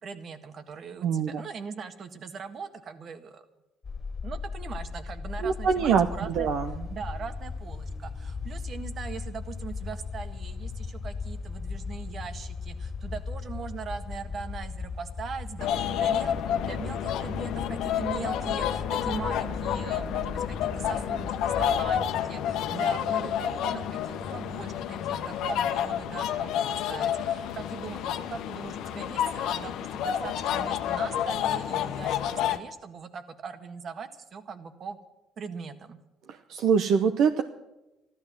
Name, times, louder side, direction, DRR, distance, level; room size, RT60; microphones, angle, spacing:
voice 1, 0.0-3.4 4.2-6.5 6.9-35.0 35.4-36.0, right 5 dB, 50° right, 9 dB, 1.7 m, -40 dB
voice 2, 1.0-1.4 5.4-6.9 36.3-37.4, right 6 dB, 70° right, 7 dB, 0.9 m, -24 dB
sound 1, 3.8-22.0, left 4 dB, 35° left, 2.3 m, -38 dB
sound 2, 15.6-32.6, left 9 dB, 75° left, 1.0 m, -29 dB
14.0 x 12.0 x 7.4 m, 0.98 s
supercardioid pair, 75°, 0 cm